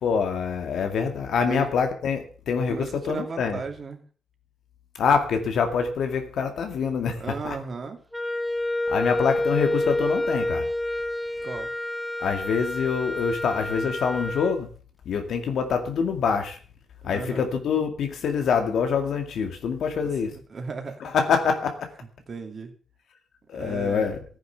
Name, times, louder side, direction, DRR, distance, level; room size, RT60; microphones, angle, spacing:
voice 1, 0.0-3.6 5.0-7.6 8.9-10.7 12.2-14.7 15.1-16.6 17.0-20.3 21.0-21.9 23.5-24.2, left 6 dB, 70° left, 5 dB, 2.2 m, -25 dB
voice 2, 2.6-4.0 7.2-8.0 11.4-11.7 17.0-17.4 20.0-21.1 22.3-22.7 23.5-24.1, right 4 dB, 40° right, 4 dB, 2.8 m, -35 dB
Wind instrument woodwind instrument, 8.1-14.6, left 1 dB, 5° left, 0.9 m, -28 dB
14.5 x 10.0 x 6.9 m, 0.40 s
wide cardioid pair, 150°, 0 cm